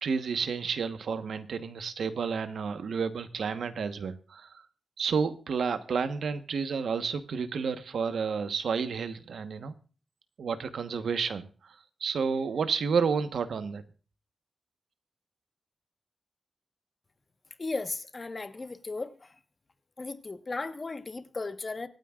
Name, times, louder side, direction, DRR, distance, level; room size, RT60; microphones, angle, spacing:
voice 1, 0.0-4.6 5.0-9.7 10.4-11.7 12.0-13.8, right 5 dB, 90° right, 1.1 m, -31 dB
voice 2, 17.6-19.4 20.0-21.9, left 3 dB, 35° left, 1.2 m, -36 dB
25.0 x 9.3 x 2.4 m
wide cardioid pair, 115°, 0 cm